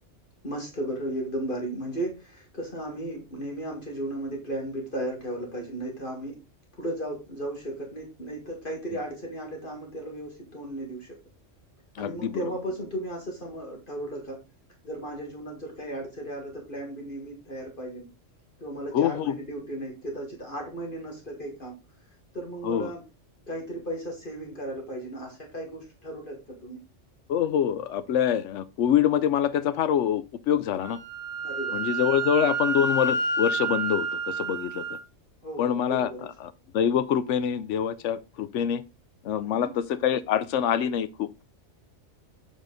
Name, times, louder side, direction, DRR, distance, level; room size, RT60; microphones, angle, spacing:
voice 1, 0.4-6.4 6.8-11.2 12.0-14.4 14.8-18.1 18.6-21.8 22.3-23.0 23.5-26.8 31.4-31.8 32.2-32.5 35.4-36.3 39.4-39.7, right 1 dB, 45° left, 2.1 m, -35 dB
voice 2, 12.0-12.5 18.9-19.3 22.6-22.9 27.3-31.0 31.7-35.0 35.6-38.8 39.2-41.3, left 9 dB, 75° left, 1.0 m, -25 dB
Wind instrument woodwind instrument, 30.8-35.0, right 3 dB, 40° right, 1.6 m, -29 dB
7.4 x 5.1 x 3.9 m
omnidirectional pair, 1.3 m